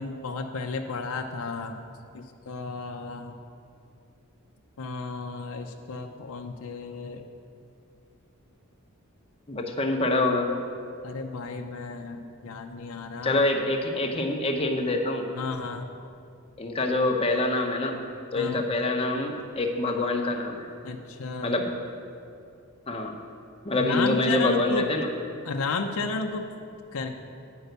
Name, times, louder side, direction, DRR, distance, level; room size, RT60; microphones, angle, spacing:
voice 1, 0.0-1.8 2.1-3.4 4.8-7.2 11.0-13.4 15.4-15.9 18.4-18.6 20.8-21.6 23.7-24.9 25.4-26.5 26.9-27.2, left 4 dB, 75° left, 3 dB, 0.5 m, -33 dB
voice 2, 9.5-10.5 13.2-15.3 16.6-18.0 18.3-20.7 21.4-21.7 22.9-23.1 23.6-25.1, left 2 dB, 25° left, 2 dB, 0.8 m, -25 dB
9.0 x 5.5 x 8.0 m, 2.5 s
head